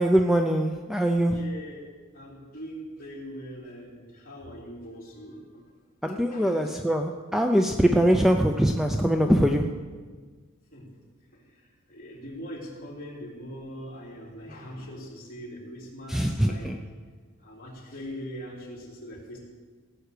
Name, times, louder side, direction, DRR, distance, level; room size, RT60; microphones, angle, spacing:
voice 1, 0.0-1.4 6.0-9.7 16.1-16.8, equal, ahead, 4 dB, 0.5 m, -22 dB
voice 2, 1.3-1.8 2.1-5.7 6.3-6.6 10.7-10.9 11.3-11.4 11.9-16.7 17.4-19.4, equal, 40° left, -4 dB, 3.6 m, -41 dB
17.0 x 7.9 x 6.8 m, 1.5 s
head